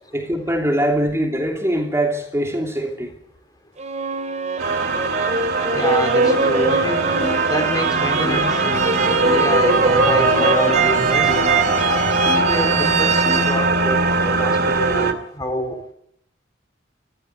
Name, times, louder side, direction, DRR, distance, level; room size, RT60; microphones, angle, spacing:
voice 1, 0.1-3.1, right 1 dB, 15° right, 3.0 m, -22 dB
sound 1, 3.8-14.8, right 3 dB, 40° right, 2.8 m, -22 dB
sound 2, 4.6-15.1, right 3 dB, 60° right, 2.5 m, -21 dB
voice 2, 5.7-7.1 7.5-8.6 9.3-11.5 12.3-15.8, equal, 20° left, 4.4 m, -27 dB
sound 3, 6.2-13.6, left 1 dB, 40° left, 4.3 m, -31 dB
28.5 x 14.5 x 8.2 m
head